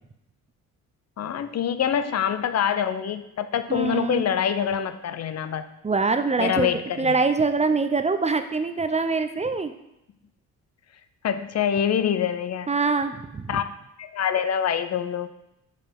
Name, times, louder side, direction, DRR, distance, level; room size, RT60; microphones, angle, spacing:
voice 1, 1.2-5.7 6.4-7.2 11.2-12.7 13.5-13.7 14.0-15.3, left 8 dB, 50° left, 11 dB, 0.6 m, -25 dB
voice 2, 3.7-4.3 5.8-9.7 12.7-13.6, right 4 dB, 20° right, 9 dB, 0.5 m, -24 dB
5.5 x 5.1 x 5.3 m, 0.86 s
cardioid pair, 75°, 34 cm